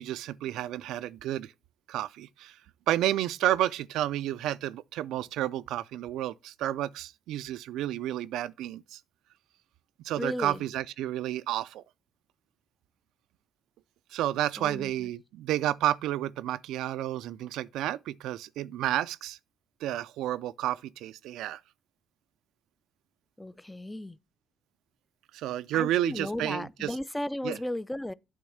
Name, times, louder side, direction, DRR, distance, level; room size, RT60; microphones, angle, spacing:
voice 1, 0.0-1.5 1.9-2.6 2.9-9.0 10.0-11.8 14.1-19.4 19.8-21.6 25.3-27.0 27.4-27.6, right 13 dB, 90° right, 0.3 m, -31 dB
voice 2, 10.2-10.6 14.6-15.1 23.4-24.2 25.7-28.1, left 1 dB, 10° left, 0.3 m, -35 dB
8.7 x 3.4 x 6.4 m
cardioid pair, 90°, 0 cm